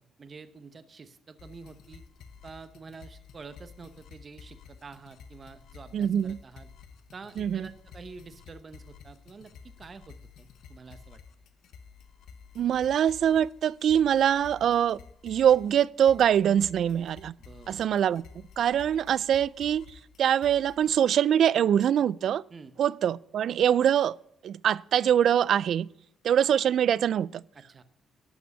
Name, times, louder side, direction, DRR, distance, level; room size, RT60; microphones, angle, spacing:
voice 1, 0.0-2.0 2.4-6.7 7.1-11.2 17.4-17.8 22.5-22.7 27.5-27.8, right 4 dB, 40° right, 0.9 m, -48 dB
sound 1, 1.4-21.0, left 6 dB, 75° left, 1.0 m, -51 dB
voice 2, 5.9-6.4 7.4-7.6 12.6-17.3 17.7-18.2 18.6-19.9 20.2-22.4 22.8-24.2 24.4-25.9 26.2-27.4, right 9 dB, 65° right, 0.3 m, -23 dB
12.5 x 6.1 x 8.2 m
cardioid pair, 90°, 0 cm